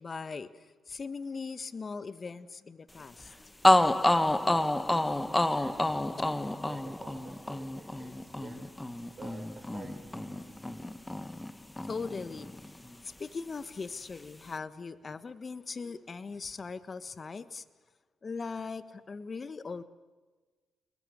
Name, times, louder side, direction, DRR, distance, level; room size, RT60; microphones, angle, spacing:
voice 1, 0.0-3.6 11.9-12.7 13.0-17.6 18.2-19.8, left 4 dB, 40° left, 14 dB, 1.3 m, -40 dB
sound 1, 3.2-3.3 3.6-11.5 11.8-12.9, left 1 dB, 15° left, 1.4 m, -28 dB
voice 2, 5.5-6.4 6.7-8.7 9.2-10.9, right 4 dB, 45° right, 0 dB, 6.4 m, -50 dB
29.0 x 20.5 x 6.6 m, 1.3 s
hypercardioid pair, 50°, 0 cm